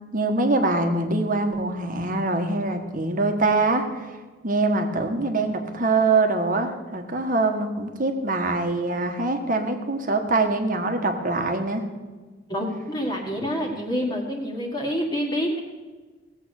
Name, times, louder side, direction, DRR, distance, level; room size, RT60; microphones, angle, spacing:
voice 1, 0.1-4.1 4.4-11.8 13.4-13.5, right 3 dB, 45° right, 5 dB, 1.4 m, -24 dB
voice 2, 12.5-15.6, equal, 20° left, -1 dB, 1.7 m, -27 dB
17.5 x 7.9 x 6.5 m, 1.3 s
head